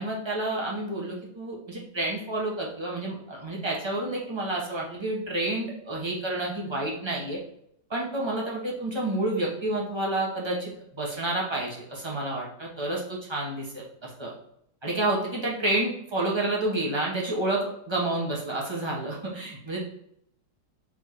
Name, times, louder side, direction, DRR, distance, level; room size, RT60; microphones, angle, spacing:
voice 1, 0.0-7.4 7.9-14.3 14.8-19.8, right 2 dB, 25° right, -3 dB, 0.5 m, -29 dB
4.2 x 3.5 x 3.1 m, 0.72 s
omnidirectional pair, 2.0 m